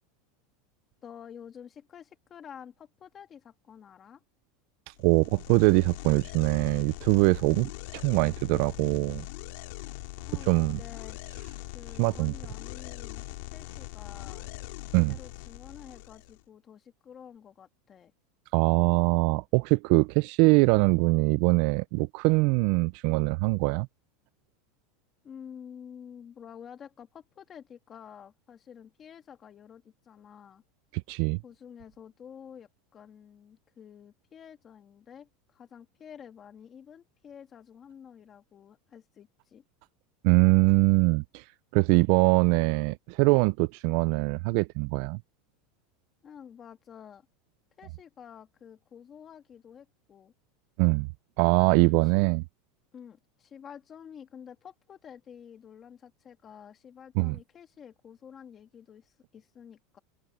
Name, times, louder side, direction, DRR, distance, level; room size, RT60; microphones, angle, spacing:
voice 1, 1.0-4.2 10.2-11.2 11.7-13.3 13.5-14.5 15.1-18.1 25.2-30.6 31.4-39.6 46.2-47.3 47.8-50.3 51.8-52.3 52.9-60.0, left 8 dB, 20° left, 2.6 m, -49 dB
sound 1, 5.0-16.4, left 23 dB, 65° left, 2.5 m, -41 dB
voice 2, 5.0-9.2 10.5-10.8 12.0-12.3 14.9-15.2 18.5-23.9 31.1-31.4 40.2-41.4 41.7-45.2 50.8-51.1 51.4-52.4 57.2-57.4, right 26 dB, 50° right, 0.3 m, -23 dB
supercardioid pair, 170°, 0 cm